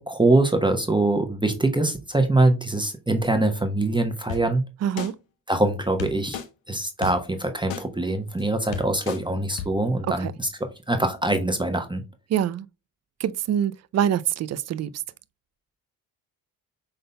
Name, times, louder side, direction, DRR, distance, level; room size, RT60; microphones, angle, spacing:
voice 1, 0.0-4.6 5.5-6.4 6.7-12.0, right 2 dB, 10° right, 1.0 m, -23 dB
sound 1, 4.3-4.4 5.0-5.1 6.0-6.5 7.0-7.1 7.7-7.8 8.4-8.5 8.7-9.2 9.6-9.7, left 7 dB, 75° left, 0.9 m, -31 dB
voice 2, 4.8-5.1 10.2-10.3 12.3-12.7 13.2-14.9, right 9 dB, 40° right, 0.4 m, -25 dB
5.4 x 3.8 x 2.2 m
hypercardioid pair, 50°, 45 cm